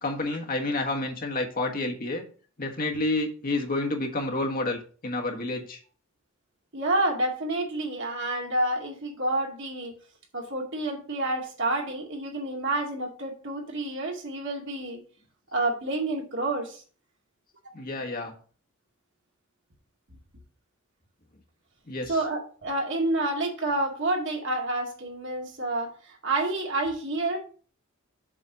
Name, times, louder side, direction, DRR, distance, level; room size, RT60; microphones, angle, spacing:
voice 1, 0.0-2.2 2.6-5.8 17.7-18.3 21.9-22.1, left 2 dB, 40° left, 2 dB, 1.4 m, -29 dB
voice 2, 6.7-9.9 10.3-15.0 15.5-16.8 22.1-27.4, right 2 dB, 60° right, 0 dB, 2.3 m, -29 dB
7.4 x 4.2 x 6.7 m, 0.41 s
head